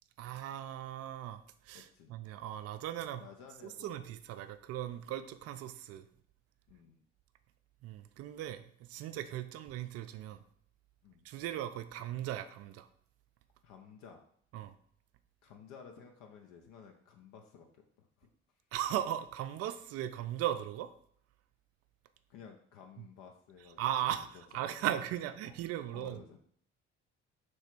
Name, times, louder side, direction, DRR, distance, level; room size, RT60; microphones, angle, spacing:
voice 1, 0.2-3.2 3.6-6.0 7.8-10.4 11.2-12.9 14.5-14.7 18.7-20.9 23.8-24.3 24.5-26.2, right 11 dB, 45° right, 10 dB, 0.4 m, -38 dB
voice 2, 1.7-2.1 3.2-4.1 6.7-7.0 11.0-11.3 13.6-14.2 15.4-18.3 22.3-23.8 24.2-24.8 25.5-25.6 25.9-26.4, left 6 dB, 60° left, 3 dB, 0.6 m, -54 dB
3.2 x 3.1 x 4.4 m, 0.62 s
figure-of-eight pair, 50°, 37 cm